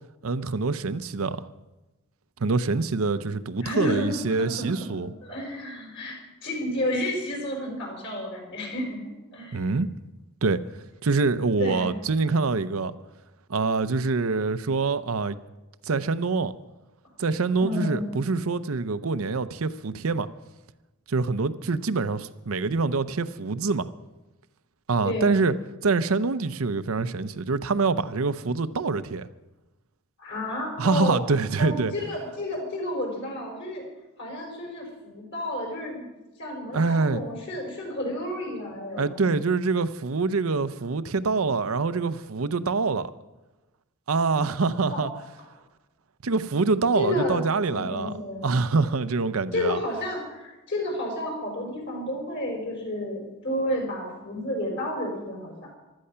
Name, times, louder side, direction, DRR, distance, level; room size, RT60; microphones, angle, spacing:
voice 1, 0.2-1.5 2.4-5.1 9.5-9.9 10.4-10.6 11.0-12.9 13.5-15.4 15.8-16.5 17.2-20.3 21.1-23.9 24.9-25.5 25.8-29.3 30.8-31.9 36.7-37.2 39.0-43.1 44.1-45.1 46.2-48.1 48.4-49.8, right 4 dB, 70° right, 13 dB, 0.7 m, -25 dB
voice 2, 3.6-4.7 5.2-6.2 6.4-9.0 9.3-9.7 11.6-11.9 17.6-18.1 25.0-25.4 30.2-31.2 31.6-33.8 34.2-36.1 36.4-39.3 44.9-45.1 46.9-48.5 49.5-55.5, left 1 dB, 55° left, 0 dB, 5.6 m, -31 dB
15.5 x 12.5 x 5.7 m, 1.1 s
head